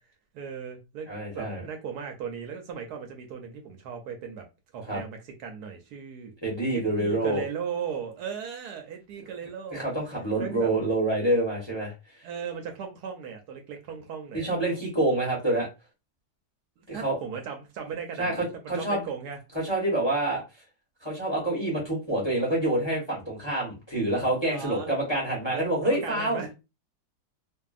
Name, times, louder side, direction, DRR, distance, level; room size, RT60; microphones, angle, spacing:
voice 1, 0.3-1.1 1.3-4.5 4.7-6.3 6.7-10.1 10.4-10.7 12.2-14.5 16.8-19.4 24.5-25.0 25.5-26.5, right 7 dB, 75° right, 1.1 m, -37 dB
voice 2, 1.1-1.6 4.9-5.0 6.4-7.4 9.7-11.9 14.3-15.7 16.9-17.2 18.2-19.0 19.6-20.4 21.0-26.4, right 1 dB, 25° left, 0.6 m, -27 dB
2.6 x 2.4 x 2.3 m
omnidirectional pair, 1.9 m